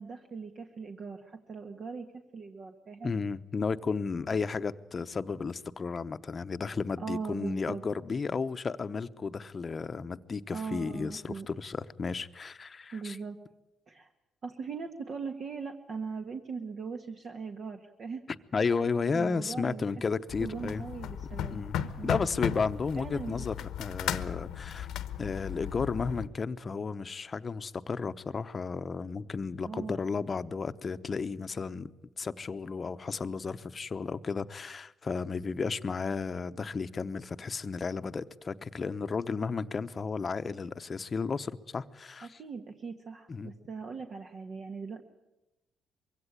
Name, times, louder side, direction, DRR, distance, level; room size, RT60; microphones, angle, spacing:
voice 1, 0.0-2.1 2.3-3.1 7.0-7.8 10.5-11.5 12.9-13.4 13.9-14.1 14.4-18.2 19.1-19.8 20.4-21.6 22.0-22.2 23.0-23.4 29.6-30.0 42.2-45.0, right 5 dB, 50° right, 1.5 m, -39 dB
voice 2, 3.0-13.2 18.5-20.9 21.5-21.7 22.0-24.9 25.2-42.4 43.3-43.5, left 5 dB, 35° left, 0.8 m, -33 dB
sound 1, 20.3-26.3, left 9 dB, 85° left, 1.0 m, -36 dB
22.5 x 16.5 x 9.9 m
cardioid pair, 90°, 0 cm